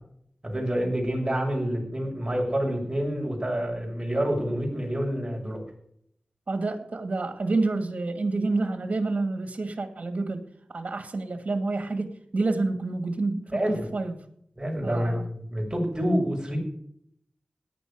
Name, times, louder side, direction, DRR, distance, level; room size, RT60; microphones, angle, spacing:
voice 1, 0.4-5.6 13.5-13.8 14.6-16.6, equal, 25° right, -1 dB, 6.6 m, -27 dB
voice 2, 6.5-10.4 10.7-14.2 14.8-15.2, right 3 dB, 60° right, 5 dB, 2.4 m, -28 dB
17.5 x 11.0 x 5.2 m, 0.69 s
wide cardioid pair, 85°, 3 cm